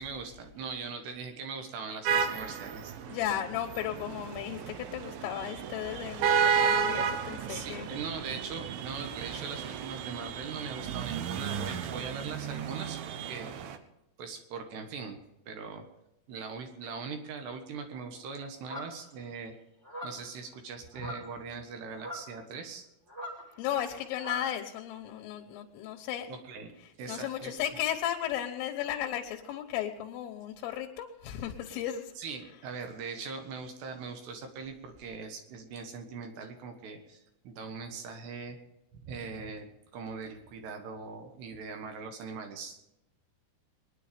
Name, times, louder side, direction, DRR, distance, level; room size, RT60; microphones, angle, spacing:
voice 1, 0.0-2.9 7.5-13.5 14.2-15.9 16.3-19.5 20.0-22.9 26.3-26.7 27.0-27.6 32.2-38.6 38.9-42.8, right 5 dB, 65° right, 5 dB, 3.2 m, -41 dB
sound 1, 2.1-13.8, right 7 dB, 85° right, 2.0 m, -32 dB
voice 2, 3.1-7.9 23.6-26.3 27.1-32.1, left 11 dB, 85° left, 3 dB, 3.8 m, -35 dB
sound 2, 18.7-19.1 19.8-20.3 20.9-21.4 21.9-22.3 23.1-24.5, left 1 dB, 10° right, 1.3 m, -41 dB
23.0 x 10.5 x 5.1 m, 0.90 s
omnidirectional pair, 5.7 m